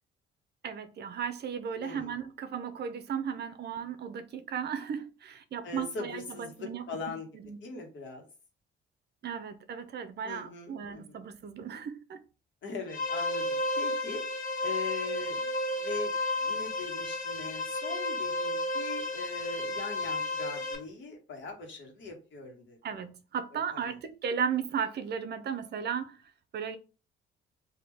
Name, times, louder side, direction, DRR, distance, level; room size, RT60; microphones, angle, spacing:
voice 1, 0.6-7.6 9.2-12.2 22.8-26.2 26.5-26.8, right 7 dB, 55° right, 0.6 m, -35 dB
voice 2, 1.8-2.2 5.6-7.3 7.6-8.2 10.2-11.2 12.6-22.8 23.5-23.9, left 4 dB, 70° left, 1.4 m, -41 dB
sound 1, 12.9-20.7, left 2 dB, 45° left, 1.4 m, -32 dB
3.6 x 2.7 x 3.4 m
cardioid pair, 90°, 20 cm